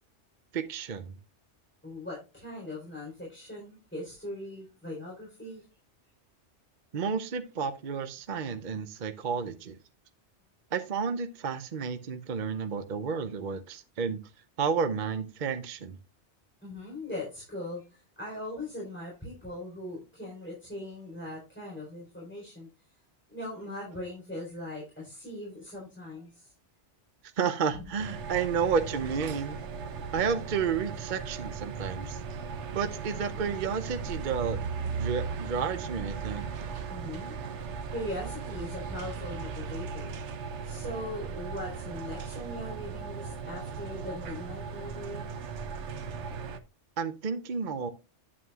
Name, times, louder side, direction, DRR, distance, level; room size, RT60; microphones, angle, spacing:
voice 1, 0.5-1.1 6.9-9.8 10.7-14.2 14.6-16.0 27.4-29.6 30.1-32.2 32.7-34.6 35.0-36.5 47.0-47.9, right 6 dB, 50° right, 0.8 m, -31 dB
voice 2, 1.8-5.6 16.6-22.7 23.3-26.5 27.7-27.8 36.9-37.4 37.9-40.2 40.6-45.3, left 1 dB, 10° left, 3.8 m, -40 dB
sound 1, 28.0-46.6, right 5 dB, 80° right, 1.1 m, -37 dB
9.2 x 8.6 x 2.3 m
omnidirectional pair, 1.2 m